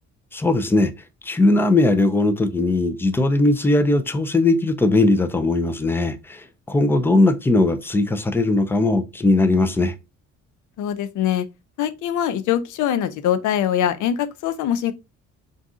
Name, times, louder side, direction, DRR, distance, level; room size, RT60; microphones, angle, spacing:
voice 1, 0.3-0.9 1.2-10.0, left 2 dB, 10° left, 0.4 m, -19 dB
voice 2, 10.8-11.5 11.8-14.9, left 10 dB, 80° left, 0.5 m, -23 dB
2.6 x 2.4 x 3.6 m
cardioid pair, 90°, 30 cm